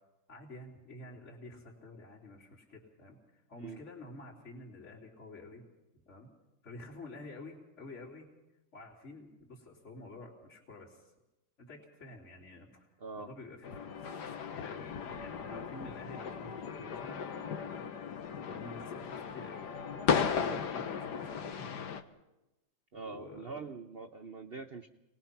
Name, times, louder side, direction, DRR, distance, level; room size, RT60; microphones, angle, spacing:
voice 1, 0.3-5.6 6.1-6.3 6.6-8.3 8.7-11.1 11.6-12.9 13.2-14.2 14.5-17.3 17.6-17.9 18.5-21.9 22.9-23.6, left 2 dB, 35° left, -4 dB, 3.3 m, -49 dB
voice 2, 13.0-13.3 20.3-20.9 22.9-24.9, right 4 dB, 60° right, 7 dB, 0.6 m, -44 dB
sound 1, 13.6-22.0, left 6 dB, 55° left, 1.6 m, -36 dB
27.5 x 20.0 x 5.9 m, 0.99 s
omnidirectional pair, 2.2 m